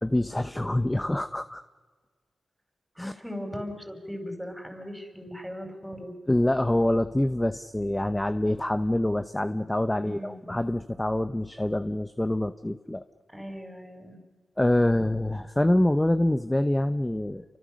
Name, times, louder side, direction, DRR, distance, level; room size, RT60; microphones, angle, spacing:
voice 1, 0.0-1.6 3.0-3.1 6.3-13.0 14.6-17.4, left 1 dB, 15° left, 11 dB, 0.8 m, -25 dB
voice 2, 2.9-6.1 10.0-10.4 13.3-14.2, equal, ahead, 5 dB, 5.0 m, -38 dB
29.0 x 25.0 x 6.5 m, 1.4 s
cardioid pair, 65°, 0 cm